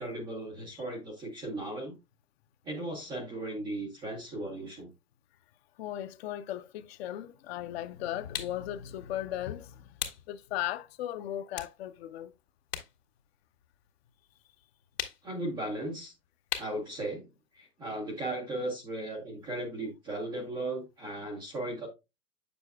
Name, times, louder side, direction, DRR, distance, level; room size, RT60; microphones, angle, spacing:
voice 1, 0.0-2.0 2.7-4.9 15.2-16.1 16.6-17.2 17.6-21.9, right 1 dB, 5° right, 0.3 m, -36 dB
voice 2, 5.8-9.9 10.3-12.3, left 12 dB, 40° left, 0.6 m, -37 dB
sound 1, 8.3-8.6 10.0-10.3 10.8-10.9 11.5-13.0 13.2-14.3 15.0-15.4 16.5-16.8, left 9 dB, 80° left, 1.9 m, -37 dB
7.4 x 7.0 x 2.3 m
hypercardioid pair, 115°, 47 cm